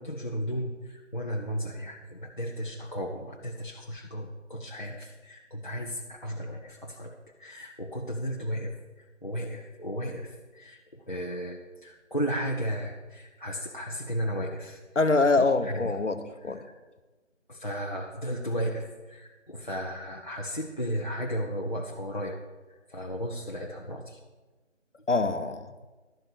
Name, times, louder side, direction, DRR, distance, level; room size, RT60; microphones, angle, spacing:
voice 1, 0.0-14.8 15.4-16.0 16.4-16.7 17.5-22.4 22.7-24.2, equal, 40° left, -1 dB, 0.8 m, -34 dB
voice 2, 15.0-16.6 25.1-25.7, left 3 dB, 70° left, 8 dB, 1.0 m, -24 dB
11.5 x 6.8 x 6.2 m, 1.2 s
figure-of-eight pair, 170°, 38 cm